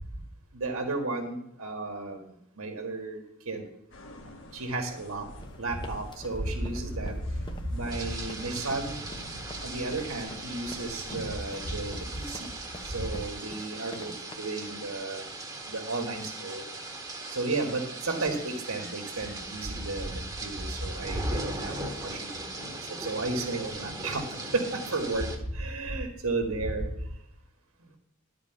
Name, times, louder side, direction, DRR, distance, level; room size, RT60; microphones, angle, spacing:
voice 1, 0.5-3.6 4.5-5.3 5.6-7.2 7.7-9.0 9.6-12.6 12.8-15.2 15.7-16.7 17.3-22.4 23.0-24.2 24.5-26.9, right 2 dB, 75° right, 4 dB, 1.8 m, -33 dB
sound 1, 3.9-11.4, equal, 60° left, 1.8 m, -46 dB
sound 2, 5.4-14.3, left 2 dB, 20° left, 0.9 m, -47 dB
sound 3, 7.9-25.4, right 2 dB, 20° right, 1.6 m, -39 dB
11.5 x 5.0 x 8.0 m, 0.76 s
head